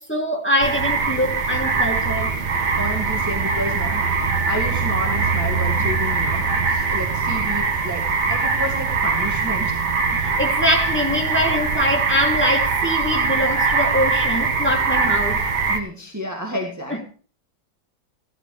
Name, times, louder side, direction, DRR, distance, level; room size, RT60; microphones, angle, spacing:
voice 1, 0.0-2.3 10.4-15.4 16.9-17.0, equal, 5° left, 2.6 m, -23 dB
sound 1, 0.6-15.8, right 4 dB, 85° right, 2.0 m, -22 dB
voice 2, 2.8-9.8 15.7-17.0, equal, 10° right, 1.9 m, -31 dB
16.0 x 12.5 x 3.2 m
omnidirectional pair, 1.7 m